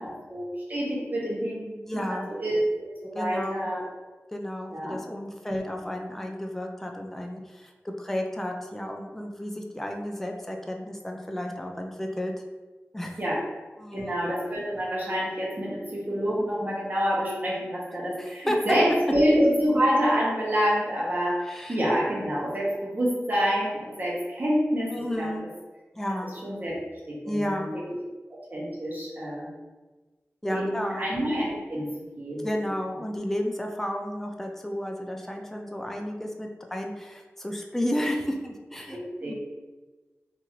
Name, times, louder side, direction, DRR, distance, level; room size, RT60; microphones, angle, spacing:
voice 1, 0.0-3.8 4.7-5.0 5.5-5.6 13.2-13.4 13.9-25.3 26.4-26.7 27.1-27.7 28.3-29.6 30.5-31.9 32.2-32.6 38.9-39.3, equal, 40° right, -6 dB, 1.0 m, -27 dB
voice 2, 1.9-2.3 3.1-3.7 4.3-12.3 12.9-13.2 13.8-14.2 18.2-18.8 21.5-21.8 24.9-25.5 26.0-26.3 27.3-27.7 30.4-31.1 32.4-39.3, equal, 5° left, 2 dB, 0.3 m, -32 dB
2.8 x 2.5 x 3.0 m, 1.2 s
wide cardioid pair, 60°, 5 cm